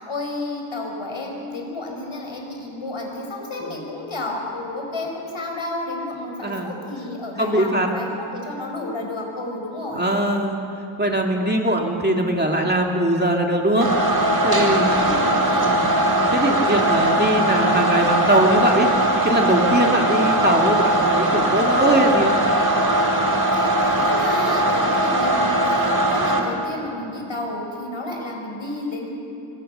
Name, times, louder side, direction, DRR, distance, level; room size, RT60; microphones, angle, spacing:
voice 1, 0.0-10.0 14.9-15.7 20.1-20.3 23.5-29.1, left 2 dB, 75° left, 1 dB, 5.1 m, -31 dB
voice 2, 6.4-6.7 7.4-7.9 9.9-10.6 11.0-13.9 14.4-15.0 15.6-15.9 16.3-18.9 19.2-22.4, right 1 dB, 20° right, 1 dB, 2.2 m, -21 dB
sound 1, 13.8-26.4, right 1 dB, 50° right, 3.2 m, -20 dB
26.5 x 21.5 x 6.7 m, 2.8 s
wide cardioid pair, 95°, 48 cm